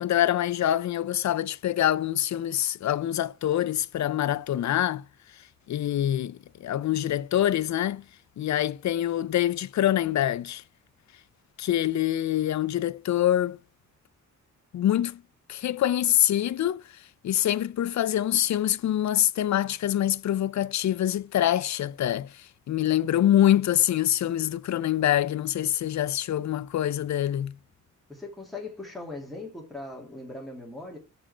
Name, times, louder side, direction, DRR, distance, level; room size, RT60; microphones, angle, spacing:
voice 1, 0.0-5.0 5.7-8.0 8.4-10.6 11.6-13.6 14.7-15.2 15.5-16.8 17.2-22.3 22.7-27.5, left 12 dB, 60° left, 0.5 m, -25 dB
voice 2, 28.1-31.0, left 2 dB, ahead, 2.4 m, -39 dB
5.5 x 5.1 x 4.9 m
wide cardioid pair, 125°, 31 cm